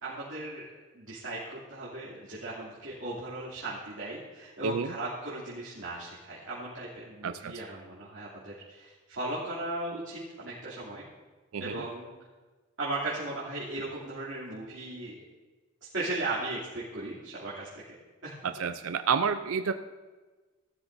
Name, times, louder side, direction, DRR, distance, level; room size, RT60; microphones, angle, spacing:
voice 1, 0.0-11.0 11.6-12.1 12.8-15.2 15.9-17.8 18.2-18.3, right 2 dB, 60° right, -9 dB, 2.9 m, -37 dB
voice 2, 4.6-4.9 7.2-7.5 11.5-11.8 18.4-19.7, right 6 dB, 85° right, 9 dB, 0.5 m, -29 dB
18.5 x 12.5 x 2.7 m, 1.3 s
head